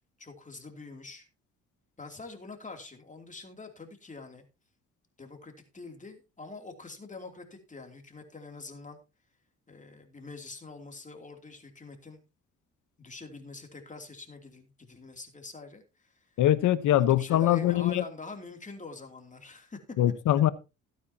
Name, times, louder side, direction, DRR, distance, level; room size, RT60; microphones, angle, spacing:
voice 1, 0.2-1.3 2.0-4.4 5.2-9.0 9.7-12.2 13.0-16.4 17.1-19.8, left 3 dB, 25° left, 2.9 m, -45 dB
voice 2, 16.4-18.0 20.0-20.5, left 12 dB, 80° left, 1.1 m, -23 dB
16.0 x 9.3 x 2.9 m
cardioid pair, 90°, 30 cm